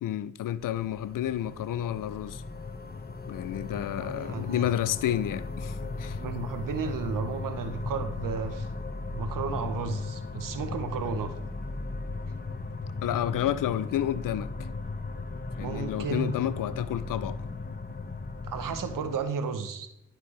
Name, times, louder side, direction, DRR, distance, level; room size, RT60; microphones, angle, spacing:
voice 1, 0.0-2.4 3.3-6.2 13.0-14.5 15.6-17.4, left 11 dB, 85° left, 0.5 m, -30 dB
sound 1, 0.6-19.2, left 3 dB, 30° left, 1.0 m, -37 dB
voice 2, 4.0-4.7 6.2-8.7 9.1-11.3 12.4-12.5 15.6-16.4 18.4-20.1, right 6 dB, 90° right, 0.9 m, -33 dB
11.0 x 5.9 x 3.3 m
cardioid pair, 45°, 32 cm